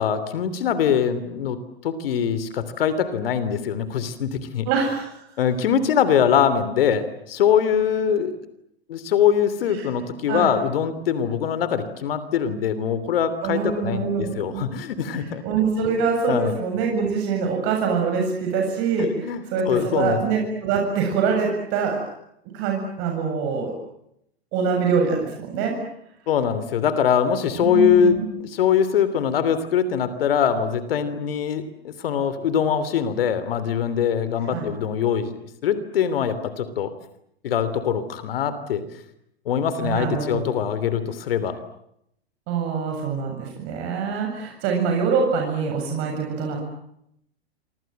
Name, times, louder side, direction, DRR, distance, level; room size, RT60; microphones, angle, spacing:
voice 1, 0.0-1.6 1.8-4.7 5.4-8.4 8.9-15.4 15.8-16.0 16.3-16.5 19.0-20.2 26.3-35.3 35.6-36.9 37.4-38.8 39.4-41.6, left 8 dB, 65° left, 14 dB, 3.1 m, -23 dB
voice 2, 4.7-5.2 9.7-9.9 10.3-10.5 13.4-14.6 15.1-22.0 22.5-23.8 24.5-25.8 27.6-28.3 34.5-34.7 39.8-40.6 42.5-46.6, right 5 dB, 45° right, 2 dB, 7.6 m, -24 dB
28.0 x 25.0 x 7.9 m, 0.77 s
figure-of-eight pair, 100°, 31 cm